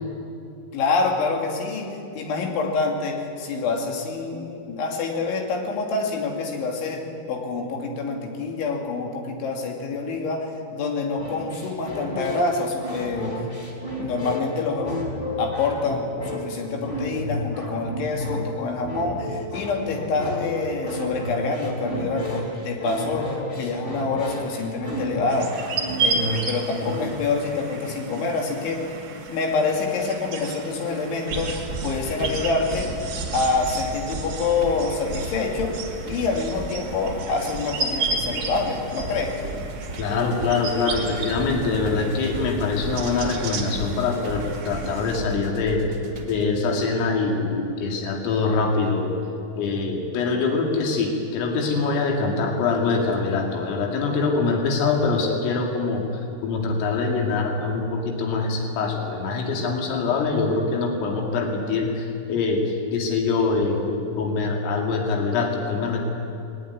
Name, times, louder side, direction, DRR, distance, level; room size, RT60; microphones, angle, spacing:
voice 1, 0.7-13.5 14.0-15.0 15.4-25.6 26.0-28.9 29.3-32.9 33.3-35.8 36.0-39.4, left 3 dB, 70° left, 1 dB, 4.9 m, -26 dB
sound 1, 11.2-27.3, left 1 dB, 10° left, 3.2 m, -32 dB
sound 2, 25.3-45.2, right 3 dB, 50° right, 3.7 m, -33 dB
sound 3, 31.3-46.5, right 3 dB, 30° right, 2.3 m, -35 dB
voice 2, 40.0-45.9 46.3-49.1 49.6-66.1, left 4 dB, 85° left, 1 dB, 5.0 m, -24 dB
20.5 x 19.0 x 9.7 m, 2.7 s
omnidirectional pair, 5.8 m